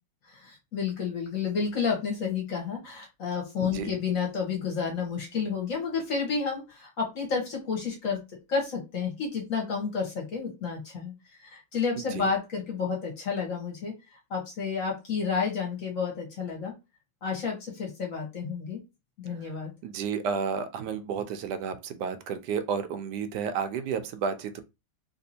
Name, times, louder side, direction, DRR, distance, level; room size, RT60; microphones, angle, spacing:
voice 1, 0.3-8.2 8.5-13.9 14.3-16.7 17.2-18.8 19.2-19.7, left 5 dB, 45° left, 1.5 m, -31 dB
voice 2, 3.6-3.9 12.2-12.3 19.8-24.6, right 6 dB, 75° right, 1.0 m, -31 dB
3.4 x 2.9 x 2.7 m
omnidirectional pair, 2.1 m